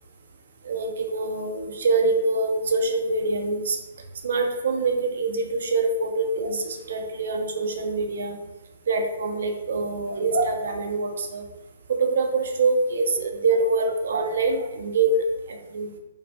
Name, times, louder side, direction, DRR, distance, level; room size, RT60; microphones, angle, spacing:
voice 1, 0.6-3.8 4.2-8.4 8.9-11.4 11.9-15.9, right 3 dB, 65° right, 4 dB, 0.4 m, -25 dB
2.4 x 2.3 x 2.4 m, 1.0 s
figure-of-eight pair, 125°, 0 cm